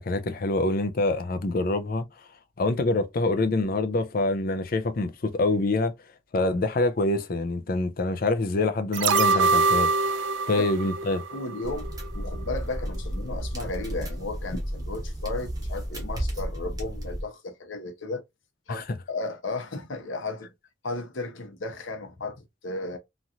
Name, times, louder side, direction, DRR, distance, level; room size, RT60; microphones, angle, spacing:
voice 1, 0.0-2.1 2.6-5.9 6.3-11.2 18.7-18.8, left 2 dB, 45° left, 0.5 m, -26 dB
sound 1, 8.9-12.1 12.4-12.5, right 4 dB, 65° right, 0.3 m, -24 dB
voice 2, 11.3-18.2 18.7-20.5 20.8-23.0, left 2 dB, 70° left, 0.8 m, -34 dB
sound 2, 11.6-17.2, equal, 20° right, 0.9 m, -33 dB
3.0 x 2.8 x 2.4 m
head